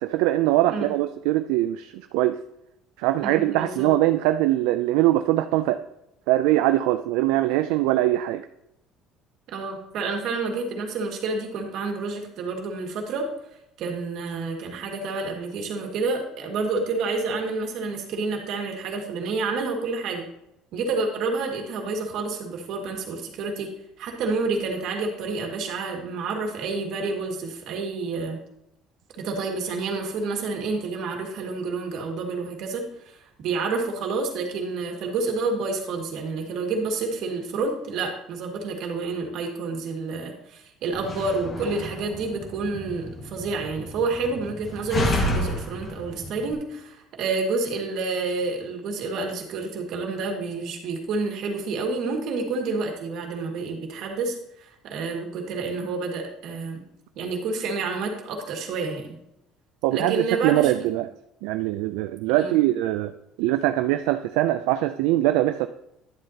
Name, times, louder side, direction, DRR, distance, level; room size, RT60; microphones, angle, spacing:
voice 1, 0.0-2.4 3.0-5.8 6.3-8.4 59.8-61.1 61.4-63.1 63.4-65.7, right 15 dB, 85° right, 9 dB, 0.3 m, -22 dB
voice 2, 3.2-3.9 9.5-13.2 13.8-20.3 20.7-23.7 24.0-28.4 29.2-56.8 57.1-59.2 59.9-60.9 62.3-62.6, right 3 dB, 65° right, 3 dB, 1.8 m, -29 dB
Slam, 40.9-46.5, left 1 dB, 35° left, 1.6 m, -31 dB
10.5 x 7.7 x 2.8 m, 0.83 s
cardioid pair, 105°, 0 cm